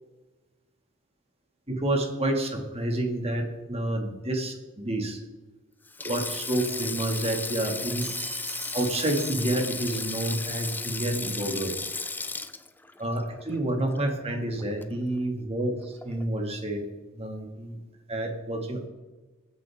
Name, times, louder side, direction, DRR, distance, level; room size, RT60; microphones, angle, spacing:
voice 1, 1.7-5.2 6.0-8.1 8.7-11.7 13.0-16.8 17.1-17.8 18.1-18.9, right 1 dB, 30° right, 3 dB, 2.3 m, -29 dB
Sink (filling or washing), 5.9-14.3 14.6-14.8 16.0-16.3, left 3 dB, 10° left, 0.5 m, -35 dB
sound 1, 8.0-10.3, right 6 dB, 75° right, 2.5 m, -43 dB
24.0 x 9.4 x 3.7 m, 1.2 s
head